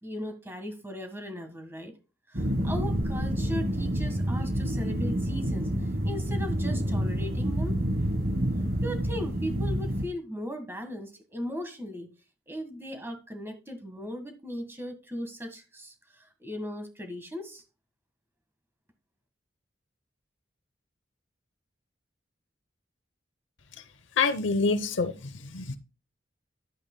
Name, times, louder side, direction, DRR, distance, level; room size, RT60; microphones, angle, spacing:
voice 1, 0.0-1.9 2.3-5.7 6.0-7.8 8.8-12.1 12.5-17.6, equal, 10° right, 1.5 m, -38 dB
sound 1, 2.3-10.1, equal, 50° right, 1.3 m, -28 dB
voice 2, 24.2-25.8, left 4 dB, 85° left, 0.8 m, -27 dB
11.0 x 8.8 x 2.2 m
head